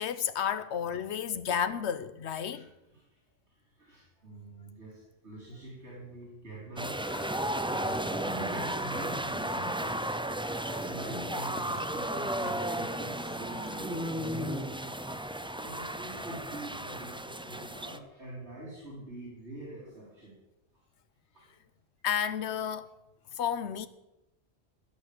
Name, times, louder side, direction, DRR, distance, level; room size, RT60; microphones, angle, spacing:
voice 1, 0.0-2.7 22.0-22.9 23.3-23.9, left 8 dB, 85° left, 1.1 m, -31 dB
voice 2, 2.5-3.2 3.5-10.2 10.5-20.3 21.3-21.5, right 1 dB, 80° right, 4.2 m, -45 dB
sound 1, 6.8-18.0, right 1 dB, 10° right, 0.3 m, -34 dB
sound 2, 6.9-13.0 13.4-14.0, left 5 dB, 65° left, 1.3 m, -50 dB
16.0 x 6.2 x 8.6 m
omnidirectional pair, 1.1 m